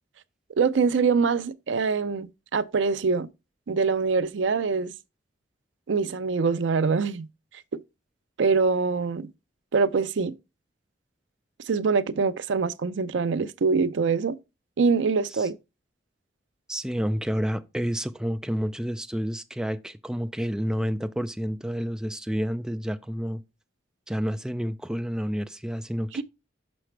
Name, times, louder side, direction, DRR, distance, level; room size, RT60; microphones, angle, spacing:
voice 1, 0.6-3.3 3.7-4.9 5.9-7.3 8.4-9.3 9.7-10.3 11.7-14.4 14.8-15.6 26.1-26.2, right 5 dB, 80° right, 0.5 m, -24 dB
voice 2, 16.7-23.4 24.1-26.2, equal, 5° right, 0.4 m, -29 dB
6.1 x 5.8 x 3.2 m
head